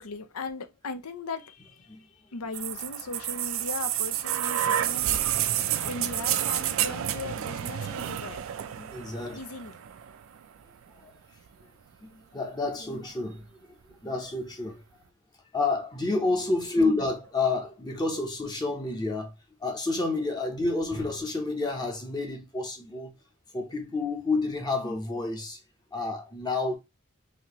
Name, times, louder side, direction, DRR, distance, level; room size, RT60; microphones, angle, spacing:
voice 1, 0.0-8.5 9.3-9.8 16.8-17.1, left 3 dB, 90° left, 0.6 m, -39 dB
sound 1, 2.5-10.4 11.5-11.6, right 11 dB, 65° right, 0.3 m, -29 dB
voice 2, 8.7-9.4 11.0-11.1 12.0-14.8 15.5-19.3 19.6-23.1 23.5-25.6 25.9-26.8, left 3 dB, 20° left, 0.7 m, -29 dB
4.2 x 2.7 x 2.9 m
head